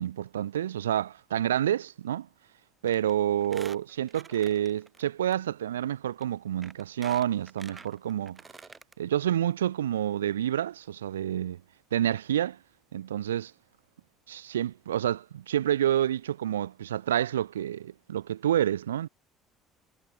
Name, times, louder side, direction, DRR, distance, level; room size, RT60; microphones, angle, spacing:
voice 1, 0.0-2.3 2.8-8.4 9.0-11.6 11.9-12.6 12.9-13.5 14.3-19.1, right 11 dB, 85° right, 0.3 m, -28 dB
Squeak, 2.9-3.1 3.4-5.0 5.3-5.4 6.2-6.3 6.6-8.9 9.3-9.4 9.6-9.7, right 4 dB, 25° right, 1.9 m, -48 dB
hypercardioid pair, 60°, 0 cm